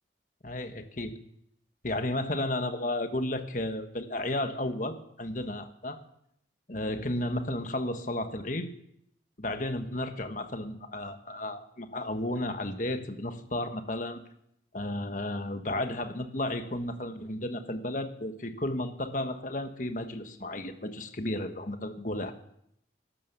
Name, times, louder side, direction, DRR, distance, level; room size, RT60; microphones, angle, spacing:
voice 1, 0.4-1.1 1.8-6.0 6.7-8.7 9.4-14.2 14.7-22.3, left 1 dB, 45° left, 7 dB, 1.4 m, -33 dB
13.0 x 12.0 x 6.8 m, 0.72 s
head